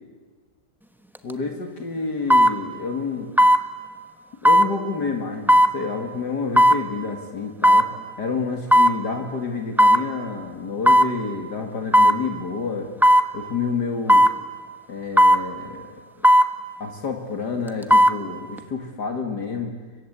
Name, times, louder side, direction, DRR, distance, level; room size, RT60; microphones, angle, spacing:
voice 1, 1.2-3.3 4.4-7.9 8.2-12.9 13.3-14.3 14.9-15.9 16.8-19.7, left 4 dB, 65° left, 3 dB, 2.7 m, -29 dB
sound 1, 1.2-1.3 2.3-2.6 3.4-3.6 4.5-4.7 5.5-5.7 6.6-6.8 7.6-7.9 8.7-9.0 9.8-10.0 10.9-11.1 11.9-12.2 13.0-13.3 14.1-14.4 15.2-15.4 16.2-16.5 17.7-18.2 18.6-18.7, equal, ahead, 0.9 m, -14 dB
30.0 x 24.0 x 8.2 m, 1.4 s
omnidirectional pair, 2.0 m